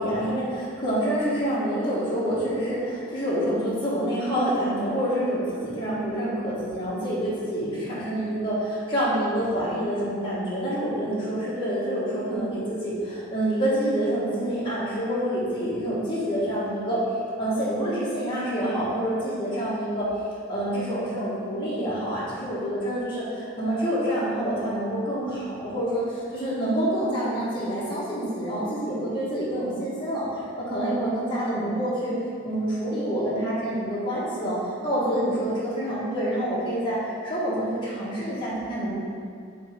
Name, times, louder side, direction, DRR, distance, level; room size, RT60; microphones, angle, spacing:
voice 1, 0.0-17.0 17.4-20.1 20.5-32.1 32.4-39.0, right 1 dB, 25° left, -10 dB, 1.5 m, -27 dB
7.2 x 4.0 x 3.7 m, 2.2 s
head